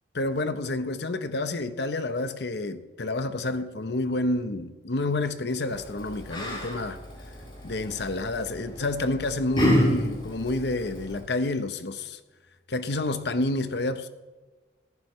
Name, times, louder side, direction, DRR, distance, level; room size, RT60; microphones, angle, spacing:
voice 1, 0.1-7.0 7.6-12.2 12.7-14.1, left 2 dB, 70° left, 0.9 m, -29 dB
Yell, 5.7-11.2, equal, 25° left, 6.2 m, -29 dB
21.5 x 14.0 x 3.2 m
head